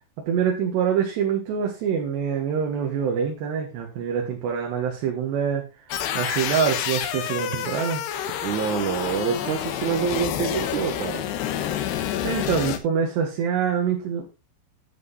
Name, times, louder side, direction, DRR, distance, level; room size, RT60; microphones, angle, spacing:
voice 1, 0.2-5.6 6.1-8.0 12.2-14.3, right 7 dB, 85° right, 0 dB, 3.8 m, -25 dB
sound 1, 5.9-12.8, left 10 dB, 85° left, 3.2 m, -28 dB
voice 2, 8.4-11.2, right 6 dB, 65° right, 5 dB, 2.1 m, -26 dB
11.0 x 8.2 x 4.1 m, 0.28 s
omnidirectional pair, 4.7 m